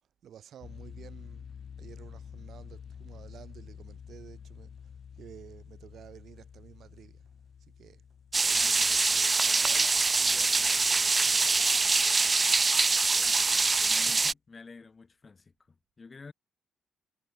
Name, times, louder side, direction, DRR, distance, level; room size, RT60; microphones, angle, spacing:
voice 1, 0.2-4.9 5.2-7.3 7.8-8.0 8.4-11.6, right 9 dB, 65° right, 6.0 m, -52 dB
sound 1, 0.6-11.5, left 7 dB, 50° left, 1.4 m, -49 dB
sound 2, 8.3-14.3, right 4 dB, 30° right, 0.3 m, -24 dB
voice 2, 13.8-16.3, left 4 dB, 30° left, 4.9 m, -49 dB
cardioid pair, 90°, 0 cm